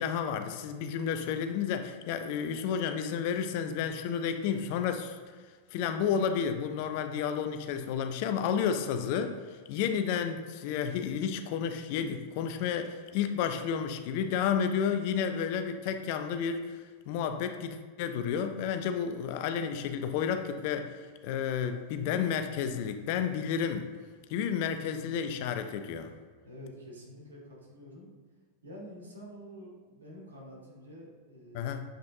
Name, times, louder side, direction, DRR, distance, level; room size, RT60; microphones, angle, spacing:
voice 1, 0.0-5.2 5.7-9.4 9.7-20.9 21.2-23.9 24.3-26.1 31.5-31.8, left 7 dB, 45° left, 8 dB, 0.5 m, -31 dB
voice 2, 26.4-28.1 28.6-31.8, equal, 70° right, -3 dB, 1.8 m, -48 dB
7.4 x 5.1 x 2.7 m, 1.5 s
figure-of-eight pair, 90°, 0 cm